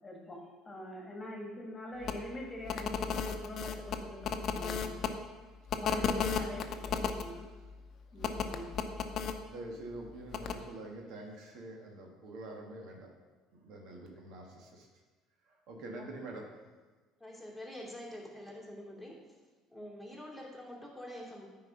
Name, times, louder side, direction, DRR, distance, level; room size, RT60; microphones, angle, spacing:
voice 1, 0.0-4.9 5.8-7.5 8.1-8.7 16.0-16.1, left 1 dB, 20° left, -1 dB, 1.9 m, -44 dB
sound 1, 2.0-2.1 2.6-5.1 5.7-7.2 8.2-9.3 10.3-10.5, left 6 dB, 55° left, 0.7 m, -33 dB
voice 2, 9.5-13.1 13.5-14.9 15.4-16.5, right 2 dB, 70° right, 1 dB, 1.5 m, -46 dB
voice 3, 17.2-19.2 19.7-21.5, left 1 dB, 5° right, -3 dB, 2.7 m, -46 dB
9.1 x 4.7 x 5.8 m, 1.3 s
supercardioid pair, 100°, 0 cm